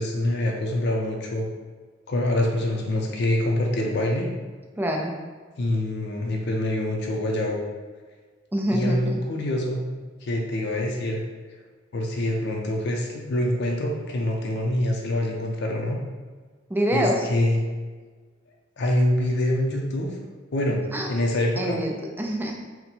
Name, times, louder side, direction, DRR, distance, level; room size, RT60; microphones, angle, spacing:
voice 1, 0.0-1.5 2.1-4.3 5.6-7.6 8.7-9.8 10.2-11.2 11.9-16.0 16.9-17.6 18.8-20.1 20.5-20.8 21.1-21.8, left 1 dB, 60° left, 0 dB, 0.5 m, -25 dB
voice 2, 4.8-5.1 8.5-9.2 16.7-17.3 20.9-21.1 21.6-22.6, equal, 10° right, 0 dB, 0.4 m, -25 dB
3.9 x 2.1 x 4.3 m, 1.4 s
head